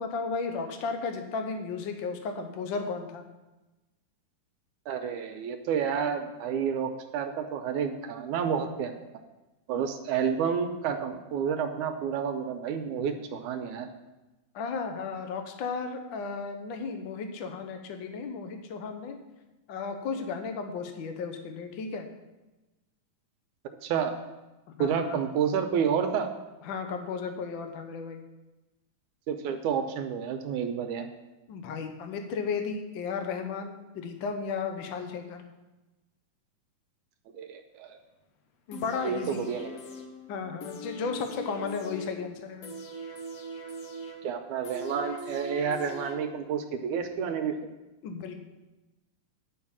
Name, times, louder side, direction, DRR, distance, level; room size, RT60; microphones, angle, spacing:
voice 1, 0.0-3.2 14.5-19.2 19.7-22.1 24.8-25.2 26.6-28.2 31.5-35.4 38.7-39.5 40.3-42.7 48.0-48.3, left 5 dB, 85° left, 6 dB, 1.0 m, -34 dB
voice 2, 4.9-8.9 9.7-13.9 23.8-24.1 24.8-26.3 29.3-31.1 37.3-38.0 39.0-39.7 44.2-47.5, right 7 dB, 80° right, 6 dB, 2.1 m, -30 dB
sound 1, 38.7-46.7 47.0-47.1, left 1 dB, 65° left, 1.9 m, -42 dB
10.5 x 5.6 x 7.3 m, 1.1 s
omnidirectional pair, 3.7 m